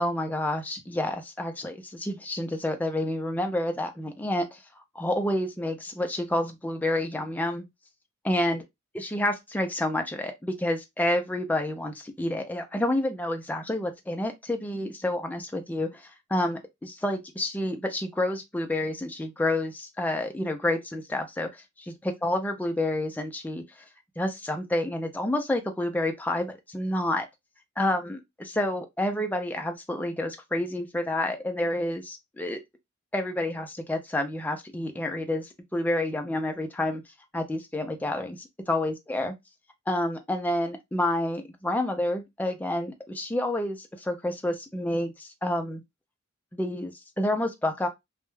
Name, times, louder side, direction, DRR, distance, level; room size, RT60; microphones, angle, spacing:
voice 1, 0.0-4.6 5.0-7.6 8.2-8.6 8.9-16.0 16.3-23.6 24.2-27.3 27.8-32.6 33.1-37.0 37.3-38.4 38.7-39.3 39.9-45.8 46.5-47.9, left 1 dB, 10° left, 0.3 m, -29 dB
2.2 x 2.0 x 3.0 m
head